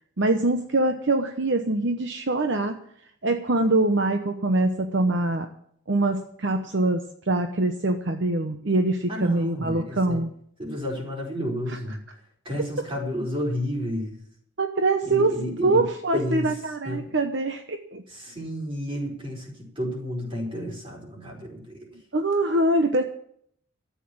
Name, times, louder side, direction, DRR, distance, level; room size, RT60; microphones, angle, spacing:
voice 1, 0.2-2.8 3.2-5.5 5.9-10.3 11.7-11.8 14.6-15.3 15.6-18.0 22.1-23.0, right 2 dB, 60° right, 6 dB, 1.0 m, -24 dB
voice 2, 9.1-10.2 10.6-12.0 12.4-14.2 15.0-15.8 16.1-16.5 16.8-17.0 18.1-21.9, equal, 25° right, 0 dB, 4.9 m, -31 dB
13.5 x 8.4 x 8.6 m, 0.65 s
head